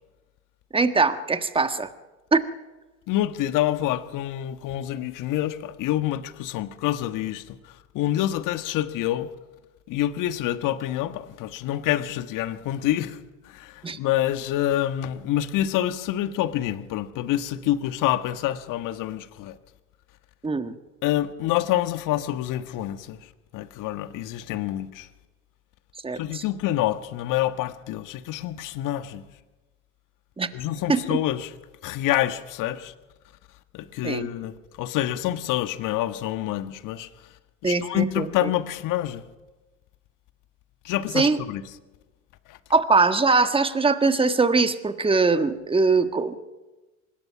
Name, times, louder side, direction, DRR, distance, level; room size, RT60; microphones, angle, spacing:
voice 1, 0.7-1.9 2.3-2.4 13.8-14.0 20.4-20.7 26.0-26.4 30.4-30.5 30.9-31.2 34.0-34.2 37.6-38.5 41.1-41.4 42.7-46.4, right 4 dB, 15° right, 1.5 m, -22 dB
voice 2, 3.1-9.3 9.9-19.6 21.0-25.1 26.1-29.2 30.5-31.5 31.8-32.9 33.7-37.3 37.6-39.2 40.8-41.6 42.5-42.6, left 13 dB, 50° left, 1.5 m, -27 dB
24.5 x 21.0 x 6.0 m
hypercardioid pair, 75°, 40 cm